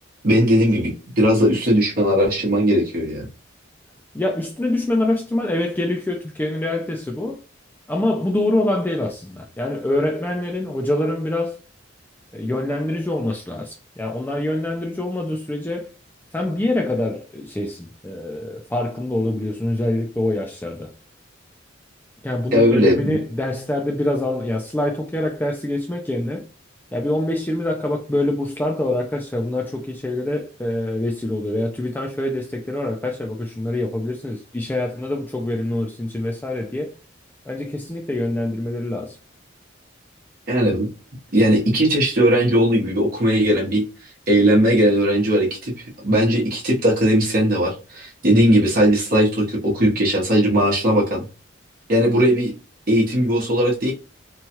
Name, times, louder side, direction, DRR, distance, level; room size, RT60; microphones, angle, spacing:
voice 1, 0.2-3.3 22.5-23.2 40.5-40.9 41.3-43.8 44.3-45.7 46.0-51.2 51.9-52.5 52.9-53.9, equal, 50° right, 0.9 m, -18 dB
voice 2, 4.1-7.4 7.9-11.6 12.3-15.9 16.3-20.9 22.2-26.4 26.9-36.9 37.5-39.2, left 1 dB, 10° left, 0.3 m, -25 dB
3.0 x 2.3 x 2.8 m
head